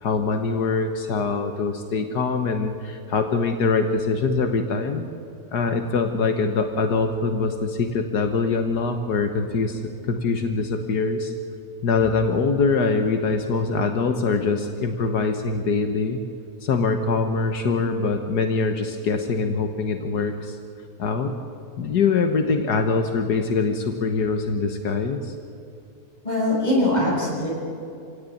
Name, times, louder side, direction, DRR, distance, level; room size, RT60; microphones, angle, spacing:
voice 1, 0.0-5.1 5.5-11.3 11.8-16.2 16.6-20.6 21.0-21.3 21.8-25.3, left 4 dB, 80° left, 6 dB, 1.8 m, -23 dB
voice 2, 26.2-27.5, left 1 dB, 25° left, -3 dB, 7.5 m, -22 dB
27.0 x 17.0 x 9.3 m, 2.6 s
omnidirectional pair, 1.7 m